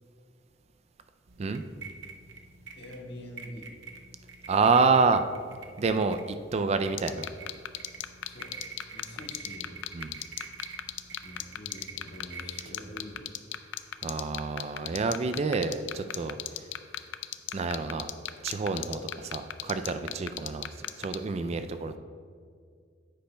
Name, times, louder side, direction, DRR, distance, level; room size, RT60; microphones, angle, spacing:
sound 1, 1.3-13.1, right 5 dB, 85° right, 0.7 m, -48 dB
voice 1, 2.7-3.7 8.2-8.5 8.9-9.8 11.2-13.3 21.3-21.6, equal, 65° left, -1 dB, 1.6 m, -45 dB
voice 2, 4.5-5.3 5.8-7.3 9.9-10.1 14.0-16.4 17.5-18.1 18.4-22.0, right 4 dB, 35° right, 9 dB, 0.3 m, -28 dB
sound 2, 7.0-21.2, left 12 dB, 90° left, 0.4 m, -33 dB
9.9 x 8.4 x 2.2 m, 2.1 s
head